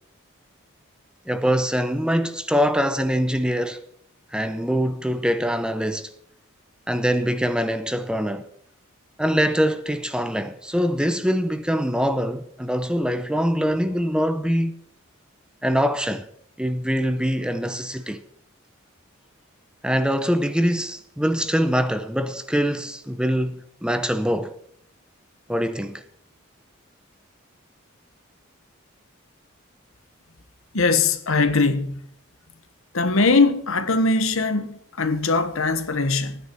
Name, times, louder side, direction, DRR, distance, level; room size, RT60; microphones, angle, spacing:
voice 1, 1.3-3.8 4.3-6.1 6.9-8.4 9.2-14.7 15.6-16.3 16.6-18.2 19.8-24.5 25.5-26.0, equal, 5° right, 0.7 m, -23 dB
voice 2, 30.7-32.0 32.9-36.4, left 3 dB, 75° left, 1.3 m, -21 dB
15.0 x 9.9 x 6.1 m
head